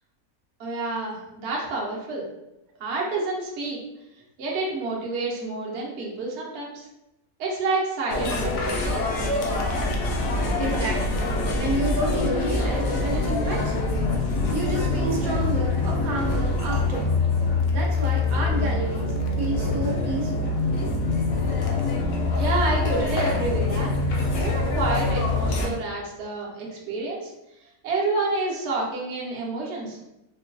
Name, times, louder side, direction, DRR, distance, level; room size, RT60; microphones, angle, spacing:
voice 1, 0.6-2.2 2.8-3.8 4.4-6.8 7.4-8.8 22.3-23.9 24.3-27.3 27.8-30.0, right 3 dB, 60° right, -3 dB, 0.9 m, -28 dB
sound 1, 8.1-25.7, left 2 dB, 75° left, 1.0 m, -24 dB
voice 2, 10.6-11.2 11.6-13.9 14.5-17.2 17.7-20.5, right 2 dB, 80° right, -1 dB, 1.1 m, -30 dB
3.7 x 2.2 x 2.5 m, 0.89 s
omnidirectional pair, 1.5 m